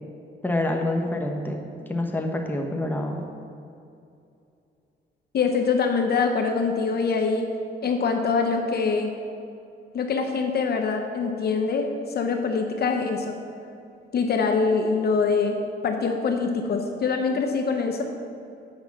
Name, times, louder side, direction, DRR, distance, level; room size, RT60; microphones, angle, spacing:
voice 1, 0.4-1.6 1.9-3.2, left 1 dB, 10° left, 2 dB, 1.1 m, -26 dB
voice 2, 5.3-7.5 7.8-9.1 9.9-13.3 14.1-18.0, left 4 dB, 55° left, 4 dB, 0.8 m, -24 dB
8.6 x 5.5 x 6.0 m, 2.6 s
cardioid pair, 90°, 20 cm